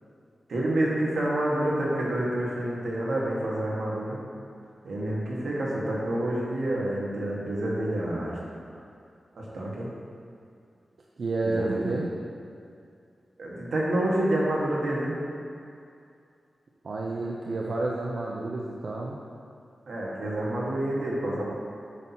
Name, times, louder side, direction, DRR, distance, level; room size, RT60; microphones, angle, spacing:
voice 1, 0.5-4.2 4.8-8.4 9.3-9.9 11.4-11.9 13.4-15.2 19.9-21.4, right 1 dB, 80° right, -5 dB, 1.4 m, -28 dB
voice 2, 11.2-12.1 16.8-19.2, right 2 dB, 65° right, -3 dB, 0.5 m, -30 dB
8.2 x 5.9 x 2.8 m, 2.4 s
wide cardioid pair, 130°, 0 cm